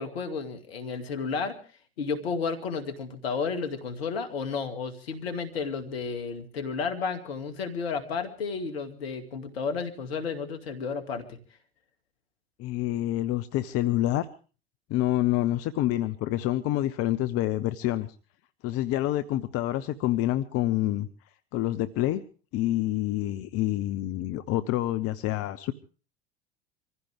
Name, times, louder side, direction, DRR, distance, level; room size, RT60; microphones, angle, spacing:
voice 1, 0.0-1.6 2.0-11.4, left 5 dB, 75° left, 7 dB, 2.4 m, -32 dB
voice 2, 12.6-14.3 14.9-18.1 18.6-21.1 21.5-22.2 22.5-25.7, left 14 dB, 50° left, 12 dB, 0.9 m, -27 dB
25.0 x 15.5 x 3.5 m, 0.38 s
hypercardioid pair, 75°, 31 cm